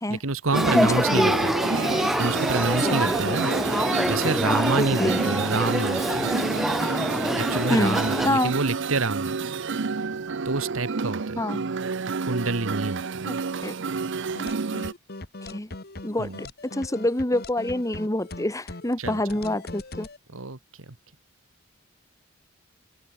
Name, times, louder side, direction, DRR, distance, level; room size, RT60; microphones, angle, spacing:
voice 1, 0.1-1.5 2.2-3.5 4.1-6.3 7.3-9.4 10.4-11.4 12.2-13.4 16.2-16.4 19.0-19.4 20.3-21.0, right 3 dB, 80° right, 1.6 m, -28 dB
Male speech man speaking / Child speech kid speaking / Conversation, 0.5-8.3, equal, ahead, 0.3 m, -26 dB
sound 1, 0.5-14.9, right 5 dB, 60° right, 0.7 m, -29 dB
voice 2, 0.7-1.4 2.8-3.4 3.8-4.1 4.8-5.6 7.7-8.5 11.4-11.6 13.3-13.4 13.6-13.7 15.4-15.7 16.0-16.5 16.7-20.1, left 1 dB, 15° left, 1.7 m, -26 dB
sound 2, 14.3-20.2, left 2 dB, 50° left, 2.3 m, -39 dB
open air
head